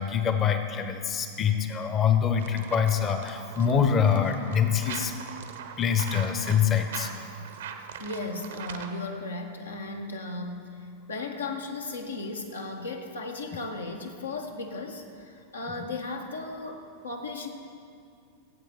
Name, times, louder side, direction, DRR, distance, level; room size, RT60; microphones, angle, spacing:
voice 1, 0.0-5.1 5.8-7.1, left 7 dB, 25° left, 8 dB, 0.9 m, -25 dB
sound 1, 2.4-9.1, right 7 dB, 60° right, 0.8 m, -41 dB
voice 2, 8.0-17.5, left 3 dB, 75° left, 3 dB, 1.3 m, -36 dB
15.5 x 8.6 x 4.2 m, 2.3 s
figure-of-eight pair, 90°, 0 cm